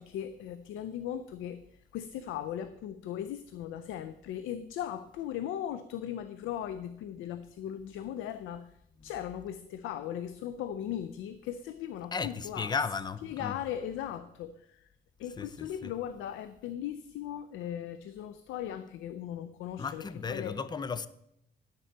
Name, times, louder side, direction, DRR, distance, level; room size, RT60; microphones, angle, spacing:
voice 1, 0.0-12.7 13.2-14.9 15.2-20.6, left 10 dB, 90° left, 0.5 m, -38 dB
voice 2, 12.1-13.6 15.4-15.9 19.8-21.1, left 5 dB, 20° left, 0.5 m, -35 dB
10.0 x 6.7 x 4.5 m
cardioid pair, 90°, 20 cm